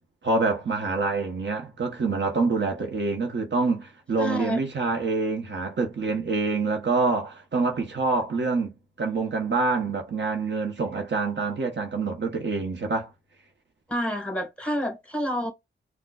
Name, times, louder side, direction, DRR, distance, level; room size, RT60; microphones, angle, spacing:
voice 1, 0.2-8.7 9.0-13.1, right 3 dB, 60° right, 1.0 m, -26 dB
voice 2, 4.2-4.6 13.9-15.5, equal, 5° left, 1.5 m, -28 dB
4.4 x 2.3 x 2.3 m
cardioid pair, 70°, 21 cm